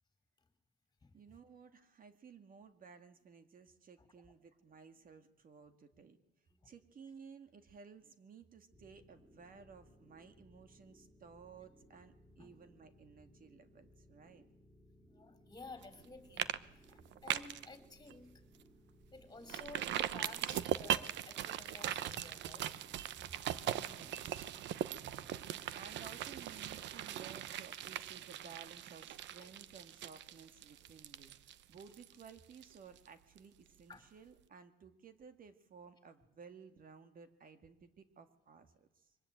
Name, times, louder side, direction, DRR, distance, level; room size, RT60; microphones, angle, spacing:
voice 1, 1.1-6.2 6.6-14.5 23.5-24.5 25.7-39.2, right 6 dB, 50° right, 9 dB, 2.0 m, -56 dB
sound 1, 8.7-27.3, left 1 dB, ahead, 4.2 m, -64 dB
voice 2, 15.1-16.5 16.9-18.3 19.1-22.7 29.4-29.5 33.9-34.0, left 3 dB, 20° left, 9 dB, 4.1 m, -53 dB
sound 2, 15.8-16.1 16.4-16.6 16.9-17.7 18.1-18.2 18.6-18.7 19.5-33.1 33.4-33.5, right 11 dB, 80° right, 1.0 m, -40 dB
23.5 x 18.5 x 9.0 m, 0.91 s
cardioid pair, 100°, 18 cm